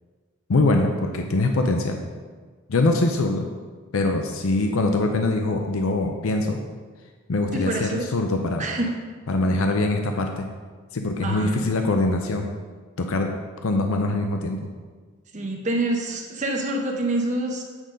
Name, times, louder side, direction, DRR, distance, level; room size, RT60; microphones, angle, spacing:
voice 1, 0.5-2.0 2.7-3.4 3.9-6.6 7.3-8.6 9.3-10.4 10.9-12.5 13.0-13.3 13.6-14.6, left 2 dB, 70° left, 3 dB, 0.6 m, -23 dB
voice 2, 7.5-8.1 8.6-9.0 9.4-9.7 11.2-11.7 15.3-17.6, right 1 dB, 35° right, 2 dB, 0.7 m, -27 dB
8.8 x 3.9 x 5.1 m, 1.5 s
head